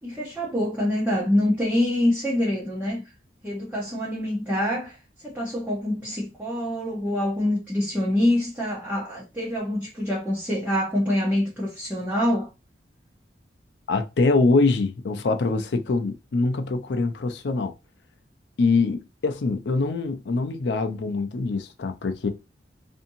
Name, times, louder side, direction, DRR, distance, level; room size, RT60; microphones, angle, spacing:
voice 1, 0.0-3.0 3.4-12.5, left 1 dB, 10° right, 0.8 m, -25 dB
voice 2, 13.9-17.7 18.6-22.3, left 3 dB, 75° left, 0.4 m, -24 dB
2.7 x 2.6 x 2.6 m
head